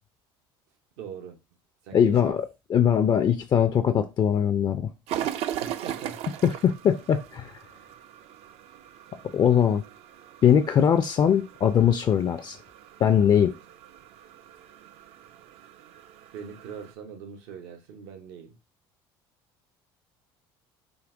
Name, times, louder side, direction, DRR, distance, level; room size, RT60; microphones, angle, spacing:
voice 1, 1.0-1.4 1.8-2.4 5.6-6.2 16.3-18.5, right 7 dB, 80° right, 0.8 m, -41 dB
voice 2, 1.9-4.9 6.4-7.6 9.3-9.8 10.4-12.6 13.0-13.5, left 8 dB, 35° left, 0.4 m, -21 dB
sound 1, 5.1-16.9, right 11 dB, 60° right, 0.4 m, -39 dB
5.0 x 2.7 x 2.5 m
supercardioid pair, 90°, 12 cm